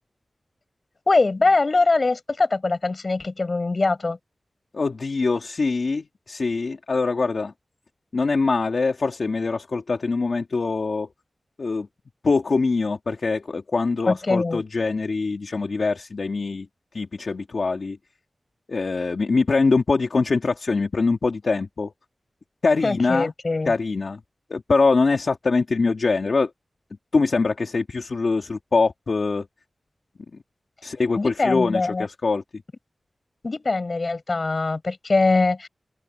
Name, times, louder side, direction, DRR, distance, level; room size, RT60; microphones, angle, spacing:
voice 1, 1.1-4.2 14.1-14.6 22.8-23.7 31.2-32.1 33.4-35.7, left 3 dB, 50° left, 4.7 m, -22 dB
voice 2, 4.7-7.5 8.1-11.1 11.6-11.9 12.2-16.7 16.9-18.0 18.7-21.9 22.6-23.3 23.7-24.2 24.5-26.5 27.1-29.5 30.8-32.6, left 4 dB, 65° left, 1.9 m, -23 dB
open air
wide cardioid pair, 75°, 0 cm